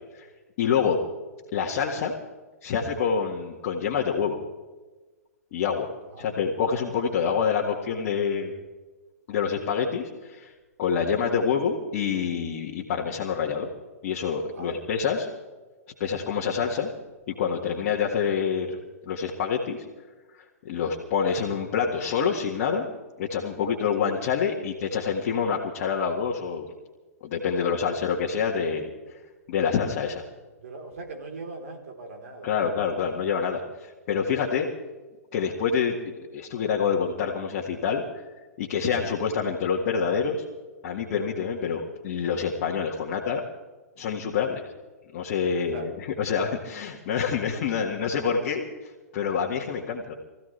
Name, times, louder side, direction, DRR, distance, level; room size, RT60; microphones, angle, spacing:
voice 1, 0.6-1.0 1.5-2.1 2.6-4.4 5.5-5.9 6.2-8.5 9.3-10.5 10.8-13.7 14.0-15.3 16.0-16.9 17.3-18.8 19.0-19.8 20.6-22.9 23.2-26.7 27.2-28.9 29.5-30.2 32.4-34.7 35.3-36.0 36.3-38.0 38.6-40.4 40.8-43.4 44.0-44.7 45.1-48.6 49.1-50.1, left 6 dB, 45° left, -3 dB, 1.9 m, -27 dB
voice 2, 27.5-27.9 30.6-32.6 33.0-33.1 45.4-45.9, right 3 dB, 60° right, 2 dB, 3.9 m, -41 dB
24.5 x 15.5 x 3.4 m, 1.2 s
figure-of-eight pair, 120°, 9 cm